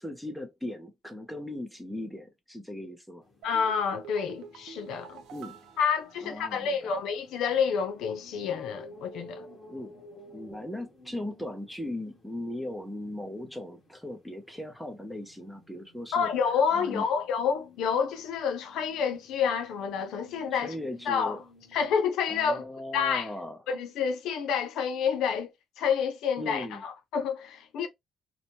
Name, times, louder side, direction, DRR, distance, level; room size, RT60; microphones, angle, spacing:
voice 1, 0.0-3.3 5.3-5.6 6.2-6.9 9.7-10.0 10.3-16.3 16.7-17.1 20.5-21.4 22.3-23.6 26.4-26.8, left 1 dB, ahead, 0.5 m, -38 dB
sound 1, 3.2-21.9, left 1 dB, 15° left, 1.2 m, -55 dB
voice 2, 3.4-5.2 5.8-9.5 16.1-20.7 21.1-21.4 21.7-22.6 22.9-23.3 23.7-25.5 25.8-27.9, left 6 dB, 75° left, 0.6 m, -28 dB
sound 2, 3.4-6.9 7.1-7.2, right 7 dB, 85° right, 0.5 m, -48 dB
2.9 x 2.1 x 2.7 m
cardioid pair, 180°, 0 cm